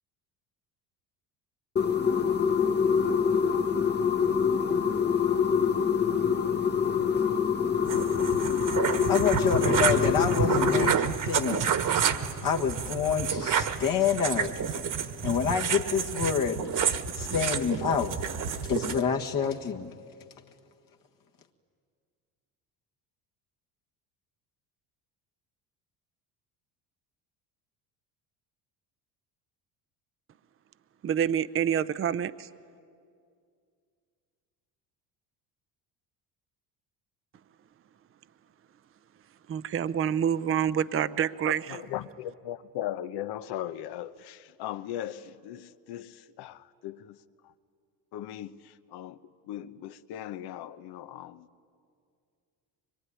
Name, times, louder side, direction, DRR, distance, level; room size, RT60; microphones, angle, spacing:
sound 1, 1.8-10.9, left 7 dB, 25° left, 1.1 m, -25 dB
sound 2, 7.8-19.0, right 7 dB, 50° right, 1.5 m, -29 dB
voice 1, 9.1-11.7 12.4-14.6 15.2-16.7 17.1-18.2 18.6-19.9, left 7 dB, 50° left, 1.7 m, -28 dB
voice 2, 31.0-32.5 39.5-41.8, right 8 dB, 30° right, 0.7 m, -27 dB
voice 3, 41.7-47.2 47.4-47.5 48.1-49.2 49.4-51.5, left 12 dB, 70° left, 1.0 m, -38 dB
23.5 x 22.5 x 9.9 m
supercardioid pair, 100°, 41 cm